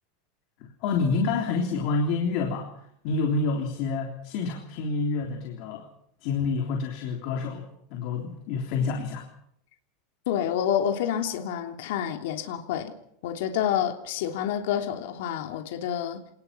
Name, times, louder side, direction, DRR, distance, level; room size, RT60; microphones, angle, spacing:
voice 1, 0.8-2.7 3.0-5.8 6.2-9.3, left 4 dB, 50° left, 3.5 m, -28 dB
voice 2, 10.3-12.9 13.2-16.2, left 9 dB, 70° left, 3.2 m, -28 dB
27.0 x 20.0 x 5.9 m
supercardioid pair, 160°, 0 cm